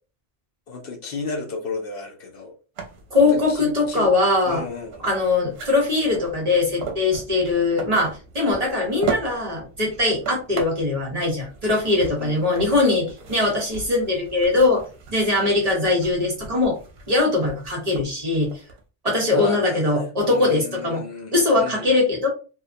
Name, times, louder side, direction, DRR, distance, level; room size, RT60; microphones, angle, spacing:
voice 1, 0.7-2.5 3.1-4.1 4.5-5.0 12.2-12.4 19.3-22.0, left 3 dB, 65° left, 3 dB, 0.8 m, -33 dB
sound 1, 2.8-18.8, right 5 dB, 70° right, 0.9 m, -38 dB
voice 2, 3.1-4.6 5.0-14.8 15.1-16.8 17.1-18.5 19.0-21.0 21.3-22.3, left 3 dB, 40° right, -1 dB, 0.9 m, -21 dB
2.8 x 2.1 x 2.5 m, 0.34 s
omnidirectional pair, 1.1 m